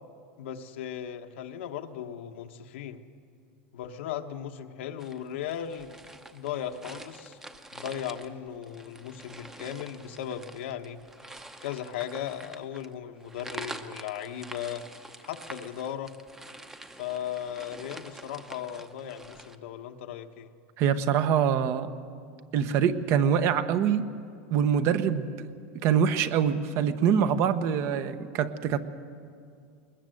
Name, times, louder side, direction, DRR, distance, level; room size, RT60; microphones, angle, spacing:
voice 1, 0.4-3.0 3.7-5.9 6.3-7.4 7.7-11.0 11.6-14.9 15.2-16.1 17.0-20.5, left 9 dB, 80° left, 6 dB, 1.2 m, -37 dB
sound 1, 5.0-19.6, right 1 dB, 5° right, 0.9 m, -46 dB
voice 2, 20.8-21.9 22.5-24.1 24.5-25.5 25.8-28.8, right 8 dB, 45° right, 11 dB, 1.0 m, -24 dB
21.0 x 20.5 x 7.8 m, 2.3 s
supercardioid pair, 150°, 6 cm